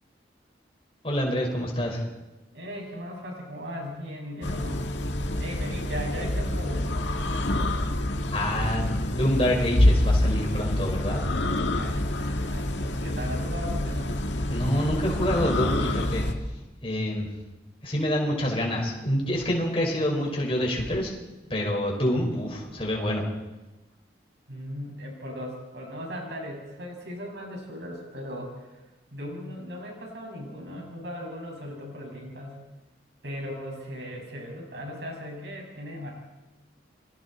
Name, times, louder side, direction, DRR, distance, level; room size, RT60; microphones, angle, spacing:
voice 1, 1.0-2.0 8.3-11.2 14.5-16.3 16.8-17.3 17.8-21.1 21.5-23.2, equal, 30° left, -1 dB, 5.1 m, -27 dB
voice 2, 2.5-4.8 5.4-7.0 11.5-14.1 24.5-28.8 29.1-32.6 33.2-36.1, equal, 70° right, 0 dB, 6.5 m, -38 dB
sound 1, 4.4-16.3, left 1 dB, 80° left, 1.9 m, -26 dB
29.5 x 23.5 x 4.4 m, 1.1 s
head